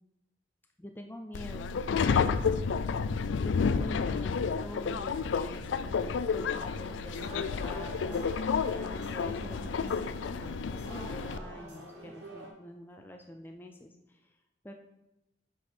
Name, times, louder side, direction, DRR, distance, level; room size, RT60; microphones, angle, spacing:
voice 1, 0.8-1.7 2.0-2.6 3.4-14.4 14.6-14.7, left 1 dB, 10° left, 4 dB, 0.4 m, -46 dB
Subway metro underground, 1.3-11.4, left 5 dB, 85° left, 0.4 m, -31 dB
sound 1, 6.4-12.5, right 1 dB, 70° right, 1.9 m, -47 dB
7.9 x 5.2 x 4.4 m, 0.90 s
head